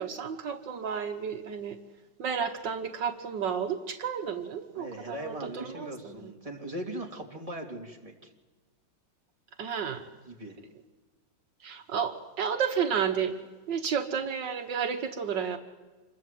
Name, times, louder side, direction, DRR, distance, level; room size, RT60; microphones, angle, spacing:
voice 1, 0.0-1.8 2.2-6.3 9.6-10.0 11.6-13.4 13.7-15.6, right 7 dB, 75° right, 5 dB, 1.9 m, -32 dB
voice 2, 4.7-8.3 10.3-10.6, right 1 dB, 20° right, 0 dB, 3.2 m, -39 dB
27.5 x 22.5 x 7.7 m, 1.3 s
omnidirectional pair, 2.0 m